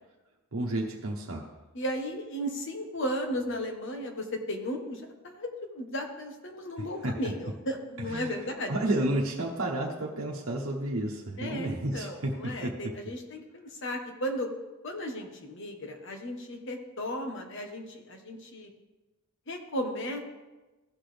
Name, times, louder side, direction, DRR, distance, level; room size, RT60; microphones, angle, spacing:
voice 1, 0.5-1.5 6.8-7.3 8.0-8.4 8.7-12.9, right 1 dB, 80° right, -2 dB, 1.0 m, -31 dB
voice 2, 1.7-8.7 11.4-14.5 14.8-18.7 19.5-20.2, equal, 60° left, 4 dB, 1.3 m, -35 dB
15.0 x 6.1 x 3.4 m, 1.1 s
head